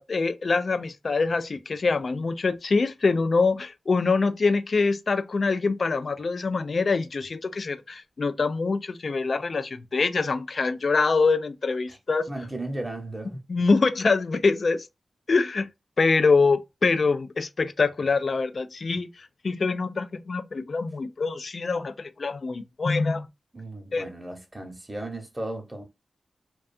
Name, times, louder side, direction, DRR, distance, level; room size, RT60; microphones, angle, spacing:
voice 1, 0.0-12.3 13.5-14.9 15.3-15.7 16.0-19.1 19.4-23.3 23.9-24.0, left 4 dB, 60° left, 0.3 m, -24 dB
voice 2, 12.3-13.4 23.5-25.8, right 1 dB, 20° right, 0.9 m, -35 dB
2.4 x 2.3 x 2.6 m
cardioid pair, 50°, 0 cm